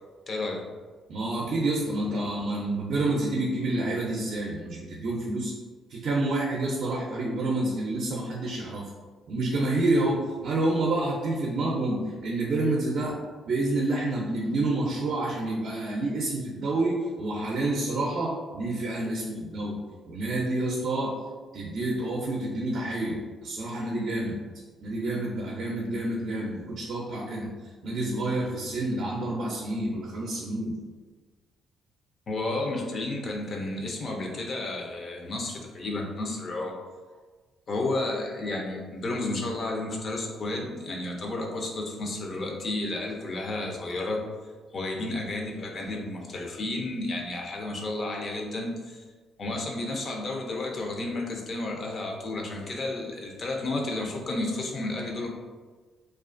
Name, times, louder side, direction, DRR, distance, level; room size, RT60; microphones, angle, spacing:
voice 1, 0.3-0.6 32.3-36.7 37.7-44.2 44.7-49.0 49.4-55.3, left 2 dB, 50° left, 0 dB, 0.5 m, -32 dB
voice 2, 1.1-5.5 5.9-8.9 9.3-13.2 13.5-19.8 20.1-21.1 21.5-24.4 24.8-27.5 27.8-30.7, right 2 dB, 60° right, -3 dB, 0.4 m, -28 dB
2.3 x 2.3 x 2.4 m, 1.4 s
cardioid pair, 90°, 0 cm